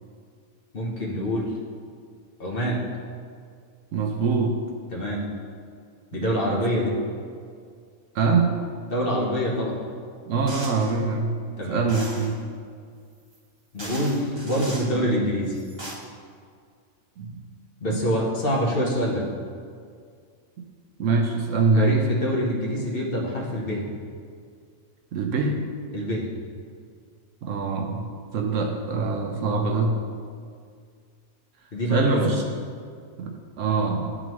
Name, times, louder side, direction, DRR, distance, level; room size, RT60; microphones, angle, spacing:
voice 1, 0.7-1.6 2.4-2.8 4.9-5.3 6.1-7.0 8.9-9.8 11.6-11.8 13.7-15.6 17.8-19.3 21.8-23.9 25.9-26.3 31.7-32.3, equal, 45° left, -3 dB, 1.1 m, -25 dB
voice 2, 3.9-4.6 6.1-6.6 8.1-8.6 10.3-12.4 17.2-17.3 17.9-18.0 20.6-20.7 21.0-22.0 25.1-25.6 27.4-30.0 31.9-32.4 33.2-34.2, right 4 dB, 70° right, 3 dB, 0.9 m, -24 dB
sound 1, 10.5-10.9 11.9-12.3 13.3-13.4 13.8-14.9 15.5-15.9, right 1 dB, 20° right, 1.0 m, -38 dB
11.0 x 3.7 x 3.0 m, 2.2 s
omnidirectional pair, 1.4 m